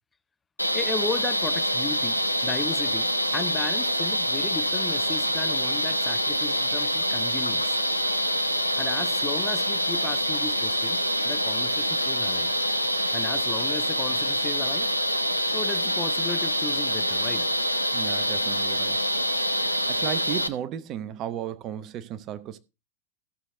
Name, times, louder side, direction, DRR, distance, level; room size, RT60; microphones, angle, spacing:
sound 1, 0.6-20.5, equal, 90° left, 0.6 m, -26 dB
voice 1, 0.7-7.8 8.8-12.5 13.1-14.9 15.5-17.5, left 4 dB, 15° left, 0.7 m, -35 dB
voice 2, 17.9-19.0 19.9-22.6, right 10 dB, 35° right, 0.7 m, -34 dB
14.5 x 6.4 x 3.7 m
figure-of-eight pair, 90°, 0 cm